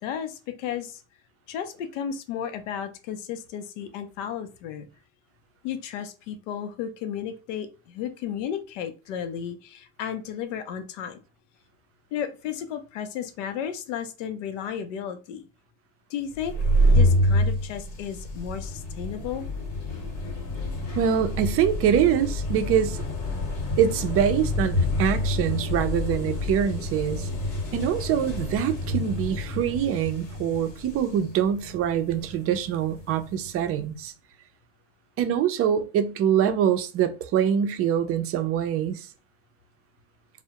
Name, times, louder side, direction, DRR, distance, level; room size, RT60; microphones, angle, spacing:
voice 1, 0.0-1.0 1.5-4.9 5.6-11.2 12.1-15.5 16.1-16.6 16.9-19.5, left 9 dB, 85° left, 0.6 m, -33 dB
sound 1, 16.3-33.7, left 1 dB, 70° left, 1.0 m, -28 dB
voice 2, 21.0-23.0 23.8-27.3 27.7-34.1 35.2-39.1, right 9 dB, 40° right, 0.4 m, -24 dB
2.2 x 2.0 x 2.8 m
supercardioid pair, 105°, 36 cm